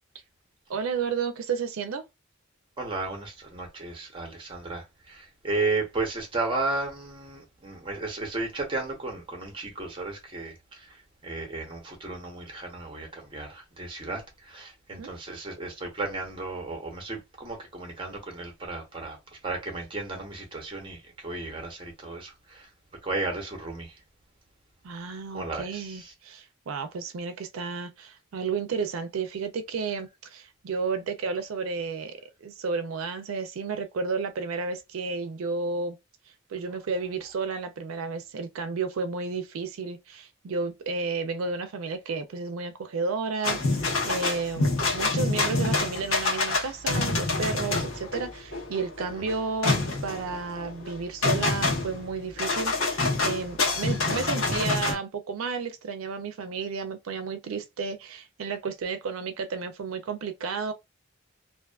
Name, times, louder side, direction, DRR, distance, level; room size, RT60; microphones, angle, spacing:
voice 1, 0.7-2.0 14.9-15.1 24.8-36.0 36.5-60.7, right 4 dB, 90° right, 0.4 m, -32 dB
voice 2, 2.8-22.7 23.0-23.9 25.3-26.1 49.2-49.3, right 3 dB, 25° right, 0.8 m, -34 dB
sound 1, 43.4-54.9, left 3 dB, 80° left, 1.0 m, -27 dB
2.5 x 2.3 x 2.3 m
head